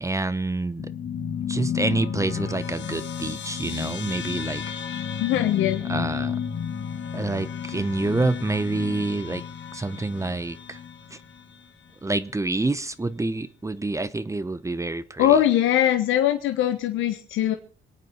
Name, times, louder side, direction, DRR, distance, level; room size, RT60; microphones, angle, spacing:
voice 1, 0.0-0.9 1.5-4.6 5.9-6.3 7.1-9.4 9.7-10.8 12.0-15.3, right 2 dB, 15° right, 14 dB, 0.9 m, -27 dB
sound 1, 0.8-11.6, left 7 dB, 65° left, 2.1 m, -32 dB
voice 2, 5.2-5.8 15.2-17.5, left 11 dB, 90° left, 7 dB, 1.3 m, -21 dB
26.5 x 9.1 x 4.4 m, 0.38 s
cardioid pair, 90°, 20 cm